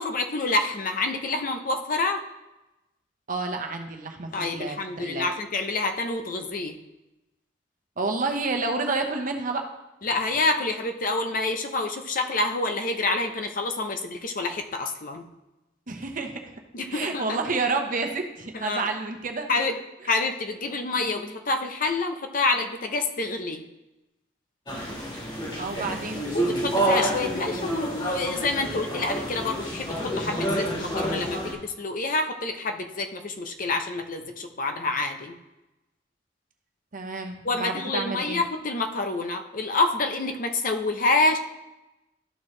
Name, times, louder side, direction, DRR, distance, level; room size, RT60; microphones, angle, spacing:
voice 1, 0.0-2.2 4.3-6.8 10.0-15.3 16.7-17.4 18.5-18.9 19.5-19.8 20.0-23.7 26.3-35.4 37.4-41.4, left 3 dB, 50° left, 6 dB, 0.7 m, -27 dB
voice 2, 3.3-5.3 8.0-9.6 15.9-16.5 16.9-19.5 25.6-26.3 36.9-38.4, right 3 dB, 45° right, 4 dB, 0.9 m, -29 dB
sound 1, 24.7-31.5, right 1 dB, 25° left, 1.6 m, -28 dB
13.0 x 4.6 x 3.2 m, 0.98 s
head